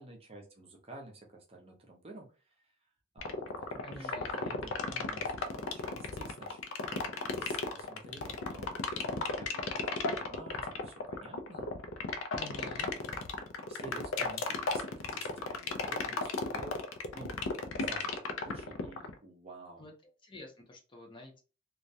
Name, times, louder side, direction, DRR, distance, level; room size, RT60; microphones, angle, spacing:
voice 1, 0.0-2.7 3.1-6.6 6.9-11.7 12.5-12.8 13.7-16.8 17.1-17.4 17.8-19.9, right 2 dB, 30° right, 1 dB, 0.5 m, -50 dB
sound 1, 3.2-19.1, left 4 dB, 75° left, 0.4 m, -34 dB
voice 2, 3.8-4.5 12.3-12.9 16.1-16.2 19.8-21.4, left 2 dB, 25° left, 1 dB, 0.5 m, -48 dB
2.3 x 2.1 x 2.6 m, 0.35 s
head